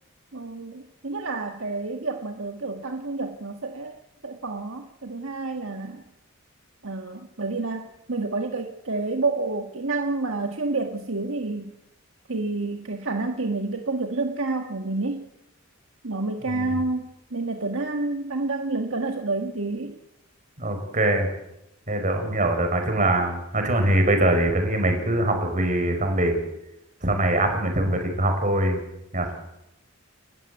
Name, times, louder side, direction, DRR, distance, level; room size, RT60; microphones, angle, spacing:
voice 1, 0.3-6.0 6.8-11.7 12.3-15.3 16.0-20.0, right 3 dB, 65° right, 4 dB, 1.7 m, -29 dB
voice 2, 16.5-16.8 20.6-21.3 21.9-26.4 27.0-28.8 29.1-29.3, right 1 dB, 35° right, 5 dB, 5.3 m, -23 dB
30.0 x 14.5 x 8.4 m, 0.89 s
head